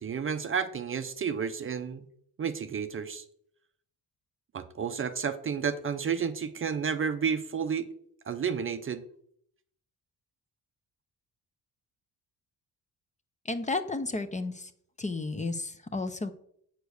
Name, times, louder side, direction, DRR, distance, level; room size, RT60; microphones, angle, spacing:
voice 1, 0.0-2.1 2.4-3.2 4.5-7.9 8.3-9.0, right 6 dB, 35° right, 10 dB, 0.6 m, -31 dB
voice 2, 13.5-14.7 15.0-16.3, left 3 dB, 20° left, 10 dB, 0.7 m, -32 dB
8.2 x 6.9 x 6.5 m, 0.67 s
cardioid pair, 160°, 38 cm